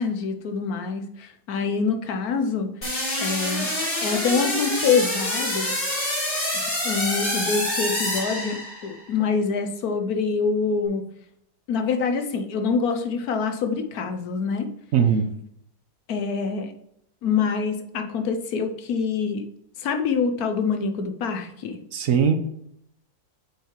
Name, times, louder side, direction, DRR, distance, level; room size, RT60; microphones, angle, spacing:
voice 1, 0.0-2.7 3.2-3.7 4.0-5.7 6.8-11.1 11.7-14.7 16.1-16.7 17.2-19.4 19.8-21.8, left 5 dB, 75° left, 7 dB, 1.3 m, -25 dB
sound 1, 2.8-9.0, left 1 dB, 45° left, 3.3 m, -27 dB
voice 2, 14.9-15.3 21.9-22.3, right 7 dB, 65° right, 8 dB, 1.1 m, -19 dB
8.0 x 4.8 x 4.6 m, 0.75 s
omnidirectional pair, 1.7 m